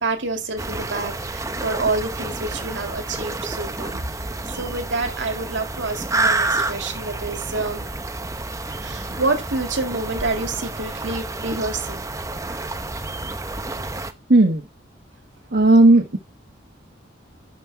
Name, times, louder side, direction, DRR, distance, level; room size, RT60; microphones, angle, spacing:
voice 1, 0.0-4.2 4.5-7.9 8.8-12.1 12.4-12.6 14.0-14.1, right 3 dB, 75° right, 2.2 m, -28 dB
sound 1, 0.6-14.1, right 2 dB, 15° right, 0.8 m, -29 dB
voice 2, 14.3-14.6 15.5-16.2, right 2 dB, 55° right, 1.3 m, -14 dB
11.5 x 5.5 x 4.7 m
head